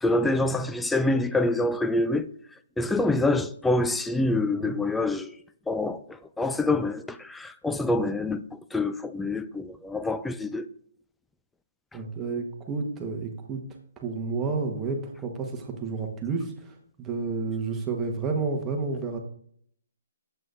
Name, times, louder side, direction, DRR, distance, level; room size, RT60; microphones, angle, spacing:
voice 1, 0.0-2.3 2.8-5.3 5.7-8.4 8.7-10.7, left 2 dB, 5° left, 0.3 m, -26 dB
voice 2, 4.5-4.8 11.9-13.6 14.0-19.2, right 4 dB, 15° right, 1.1 m, -31 dB
7.8 x 7.5 x 2.5 m
hypercardioid pair, 155°, 0 cm